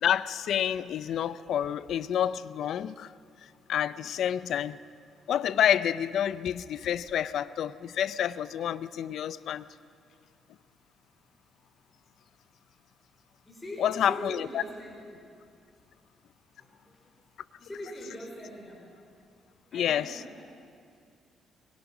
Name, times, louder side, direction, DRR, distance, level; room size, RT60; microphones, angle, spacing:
voice 1, 0.0-3.1 3.7-4.8 5.3-9.7 13.8-14.6 19.7-20.2, left 10 dB, 70° left, 17 dB, 0.5 m, -28 dB
voice 2, 13.4-15.2 15.8-15.9 16.6-17.2 17.6-19.0 19.6-20.5, equal, 15° left, -2 dB, 4.3 m, -42 dB
23.0 x 20.5 x 6.0 m, 2.3 s
cardioid pair, 90°, 0 cm